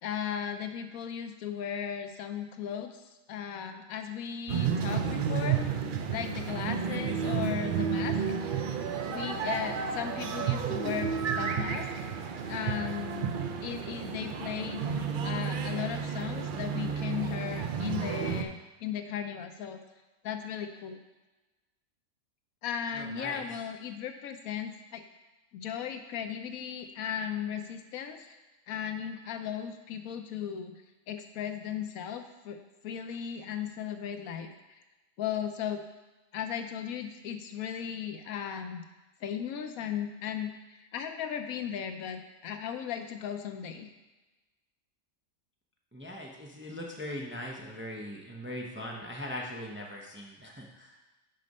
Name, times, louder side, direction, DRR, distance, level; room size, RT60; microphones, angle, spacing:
voice 1, 0.0-3.0 3.3-5.8 6.1-8.2 9.0-12.1 12.5-13.3 13.6-19.8 20.2-21.0 22.6-25.0 25.5-28.4 28.7-34.5 35.2-35.8 36.3-38.8 39.2-43.9, left 8 dB, 90° left, 7 dB, 1.1 m, -36 dB
sound 1, 4.5-18.4, right 6 dB, 70° right, 0.4 m, -32 dB
voice 2, 22.9-23.5 45.9-51.0, left 1 dB, 10° right, -1 dB, 0.5 m, -40 dB
6.4 x 5.2 x 5.3 m, 1.1 s
omnidirectional pair, 1.4 m